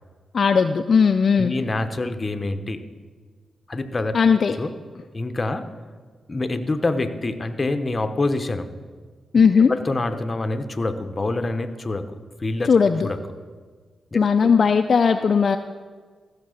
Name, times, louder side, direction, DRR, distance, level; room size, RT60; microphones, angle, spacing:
voice 1, 0.3-1.5 4.1-4.6 9.3-9.7 12.7-13.1 14.1-15.6, left 6 dB, 55° left, 7 dB, 0.4 m, -17 dB
voice 2, 1.4-2.9 3.7-4.1 4.6-4.8 5.1-5.7 6.3-8.7 9.5-12.7 13.0-13.2 14.1-14.5, left 2 dB, 35° left, 8 dB, 0.9 m, -26 dB
15.0 x 6.6 x 6.4 m, 1.5 s
cardioid pair, 65°, 0 cm